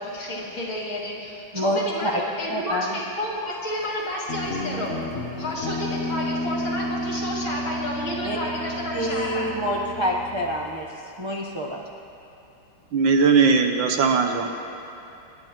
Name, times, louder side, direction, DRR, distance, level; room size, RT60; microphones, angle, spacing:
voice 1, 0.0-4.9 5.4-9.5, left 1 dB, 70° left, -6 dB, 3.2 m, -31 dB
voice 2, 1.5-2.1 2.5-3.0 8.2-8.4 8.9-10.9 11.2-11.8, equal, 30° right, -3 dB, 0.5 m, -27 dB
Guitar, 4.3-10.8, left 1 dB, 45° left, 0.9 m, -32 dB
voice 3, 12.9-14.5, right 5 dB, 70° right, 4 dB, 1.6 m, -19 dB
27.5 x 10.5 x 3.0 m, 2.9 s
omnidirectional pair, 2.3 m